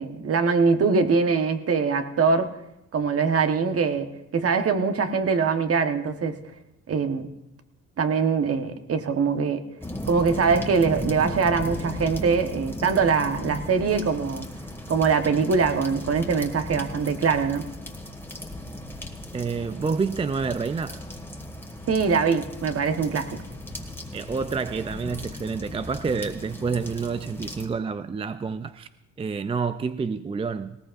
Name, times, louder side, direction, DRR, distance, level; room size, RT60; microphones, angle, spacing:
voice 1, 0.0-2.5 2.9-6.4 6.9-7.3 8.0-9.6 10.1-14.5 14.9-17.6 21.9-23.4, right 5 dB, 50° right, 1.3 m, -23 dB
sound 1, 9.8-27.7, left 1 dB, 10° left, 1.8 m, -36 dB
voice 2, 19.3-21.0 24.1-28.9 29.2-30.8, right 5 dB, 20° right, 0.4 m, -28 dB
19.5 x 18.0 x 2.6 m
cardioid pair, 90°, 30 cm